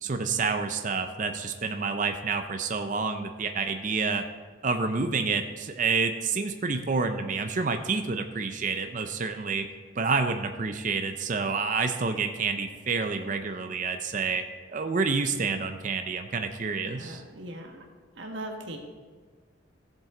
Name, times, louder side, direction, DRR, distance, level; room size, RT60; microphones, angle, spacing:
voice 1, 0.0-4.2 4.6-9.6 10.0-14.4 14.7-17.2, right 4 dB, 40° right, 6 dB, 0.5 m, -28 dB
voice 2, 16.9-17.9 18.1-18.8, right 1 dB, 60° right, 1 dB, 1.5 m, -39 dB
14.5 x 7.4 x 3.8 m, 1.5 s
head